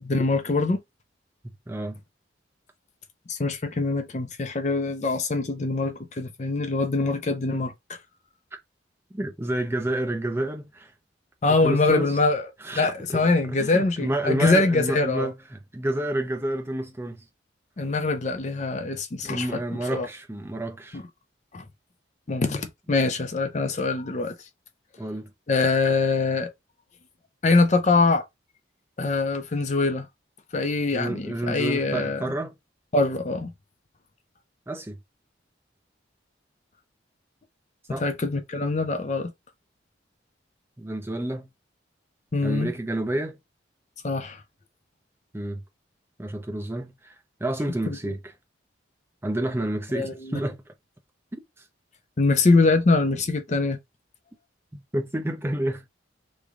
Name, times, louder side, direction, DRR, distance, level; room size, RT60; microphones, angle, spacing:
voice 1, 0.0-0.8 3.3-7.7 11.4-12.4 12.7-15.3 17.8-19.6 19.9-20.1 20.9-21.0 21.5-21.6 22.3-24.4 25.5-26.5 27.4-28.2 29.0-30.0 30.5-32.3 32.9-33.5 38.0-39.3 42.3-42.7 44.0-44.4 49.9-50.4 52.2-53.8, left 3 dB, 40° left, 0.5 m, -23 dB
voice 2, 1.4-2.0 8.5-8.6 9.1-10.9 11.5-12.2 12.6-17.2 19.2-21.0 25.0-25.3 30.9-32.5 34.7-35.0 37.9-38.0 40.8-41.5 42.4-43.4 45.3-45.6 46.2-47.1 47.4-48.3 49.2-50.6 51.3-51.4 54.7-55.8, right 1 dB, 15° right, 0.5 m, -29 dB
3.2 x 2.2 x 3.7 m
head